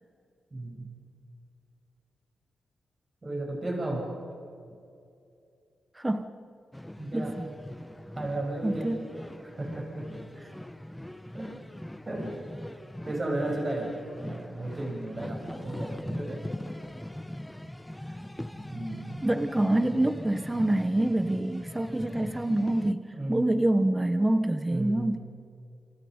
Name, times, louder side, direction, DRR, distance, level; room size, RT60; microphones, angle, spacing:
voice 1, 0.5-0.9 3.2-4.1 7.0-7.4 8.2-9.0 9.4-10.1 11.3-11.5 12.1-12.4 13.1-16.4 18.7-19.2 23.1-23.4 24.7-25.1, right 1 dB, 30° right, 0 dB, 7.9 m, -34 dB
voice 2, 6.0-6.3 7.1-7.5 8.6-9.0 19.2-25.2, right 1 dB, 15° right, 9 dB, 1.1 m, -26 dB
sound 1, 6.7-22.9, left 1 dB, 5° left, 0.9 m, -41 dB
29.0 x 27.5 x 5.2 m, 2.5 s
cardioid pair, 100°, 0 cm